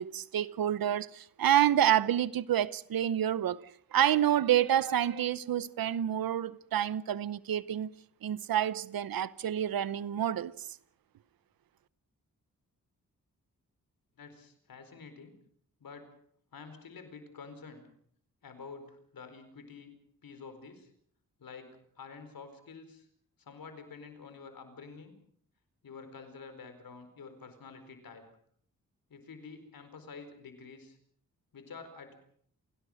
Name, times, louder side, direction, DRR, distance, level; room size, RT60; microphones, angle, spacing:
voice 1, 0.0-3.6 3.9-7.9 8.2-10.5, right 11 dB, 85° right, 0.9 m, -28 dB
voice 2, 14.2-15.3 15.8-16.0 16.5-17.9 18.4-19.9 20.2-20.9 21.4-23.1 23.4-25.1 25.8-28.2 29.1-31.0 31.5-32.2, left 5 dB, 75° left, 4.5 m, -48 dB
27.5 x 17.5 x 6.5 m
cardioid pair, 55°, 35 cm